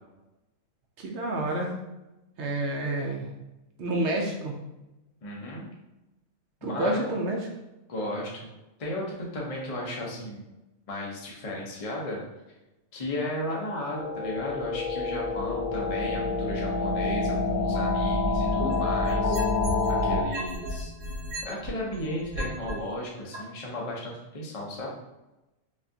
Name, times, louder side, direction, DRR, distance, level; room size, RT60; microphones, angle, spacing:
voice 1, 1.0-1.7 2.4-3.3 3.8-4.6 6.6-7.5 18.7-18.8, right 1 dB, 60° right, 0 dB, 0.8 m, -29 dB
voice 2, 5.2-5.7 6.6-7.1 7.9-8.5 8.8-10.4 10.9-12.2 12.9-19.4 19.9-20.9 21.4-24.9, left 1 dB, 35° left, -2 dB, 0.7 m, -34 dB
sound 1, 13.6-20.2, left 3 dB, 85° left, 1.1 m, -27 dB
sound 2, 18.4-19.9 20.3-22.7 23.3-23.4, right 1 dB, 85° right, 1.3 m, -35 dB
5.0 x 2.5 x 2.6 m, 0.99 s
omnidirectional pair, 1.5 m